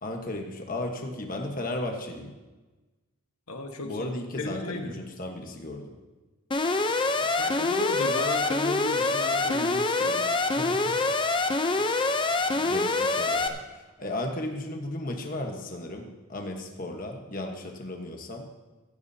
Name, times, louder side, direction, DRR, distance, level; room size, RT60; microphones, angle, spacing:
voice 1, 0.0-2.3 3.8-6.0 10.6-11.1 11.8-12.0 12.5-13.6 14.0-18.5, left 1 dB, 40° left, 2 dB, 1.2 m, -35 dB
voice 2, 3.5-5.0 7.2-10.3, left 2 dB, 90° left, 4 dB, 1.4 m, -34 dB
Alarm, 6.5-13.5, left 3 dB, 20° left, 0.6 m, -25 dB
15.5 x 15.0 x 2.8 m, 1.2 s
head